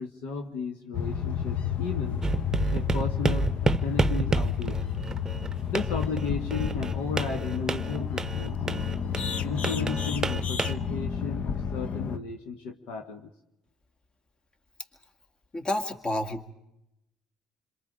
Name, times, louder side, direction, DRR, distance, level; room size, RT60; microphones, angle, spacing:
voice 1, 0.0-2.2 2.7-4.8 5.7-8.8 9.4-13.3, left 4 dB, 65° left, 4 dB, 1.6 m, -34 dB
sound 1, 0.9-12.2, left 7 dB, 50° left, 0.9 m, -31 dB
sound 2, 2.2-10.7, right 3 dB, 20° right, 0.9 m, -29 dB
voice 2, 15.5-16.5, left 1 dB, 30° left, 7 dB, 2.1 m, -30 dB
27.0 x 26.5 x 5.1 m, 0.86 s
hypercardioid pair, 55°, 3 cm